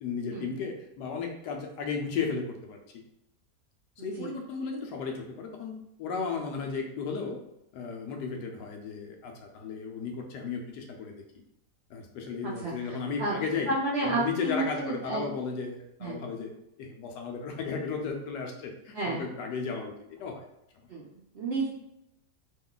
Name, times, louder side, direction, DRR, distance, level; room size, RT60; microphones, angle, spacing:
voice 1, 0.0-2.8 4.0-7.4 7.7-11.1 11.9-13.7 14.0-16.5 16.8-19.9 20.2-20.5, left 5 dB, 85° left, 3 dB, 1.2 m, -34 dB
voice 2, 4.0-4.3 12.4-13.4 13.7-15.2 16.0-16.2 18.9-19.3 20.9-21.7, right 2 dB, 65° right, -6 dB, 0.6 m, -31 dB
3.0 x 2.2 x 3.7 m, 0.82 s
omnidirectional pair, 1.7 m